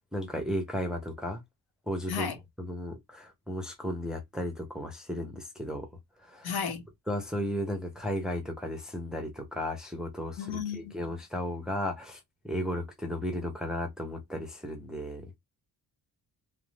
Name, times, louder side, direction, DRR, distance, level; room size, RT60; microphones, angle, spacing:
voice 1, 0.1-1.4 1.9-2.3 2.6-5.9 6.2-6.5 7.1-15.3, left 1 dB, ahead, 0.6 m, -34 dB
voice 2, 6.4-6.8 10.4-11.0, left 6 dB, 65° left, 1.0 m, -33 dB
2.5 x 2.0 x 3.1 m
cardioid pair, 115°, 42 cm